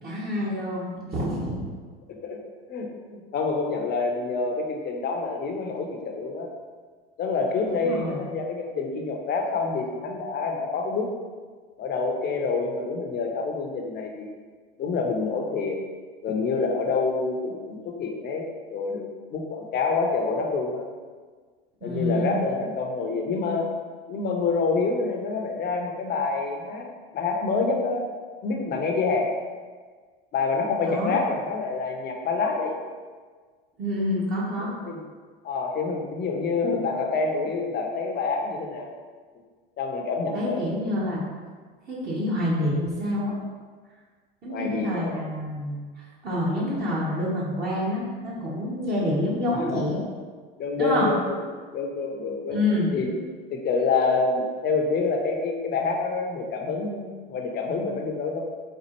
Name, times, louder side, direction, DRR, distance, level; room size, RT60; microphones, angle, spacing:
voice 1, 0.0-1.6 7.7-8.2 21.8-22.3 30.8-31.2 33.8-34.7 40.3-41.2 41.9-43.4 44.4-50.0 50.8-51.1 52.5-52.9, left 1 dB, 30° right, -7 dB, 0.9 m, -27 dB
voice 2, 2.7-6.5 7.2-11.1 11.8-14.3 14.8-15.8 16.2-20.9 21.8-23.7 24.1-26.9 27.1-28.1 28.4-29.3 30.3-32.8 34.6-35.0 35.4-38.9 39.8-40.6 44.5-45.1 49.5-50.1 50.6-53.2 53.5-58.5, left 4 dB, 35° left, 2 dB, 0.6 m, -27 dB
4.2 x 2.4 x 2.9 m, 1.5 s
hypercardioid pair, 90°, 30 cm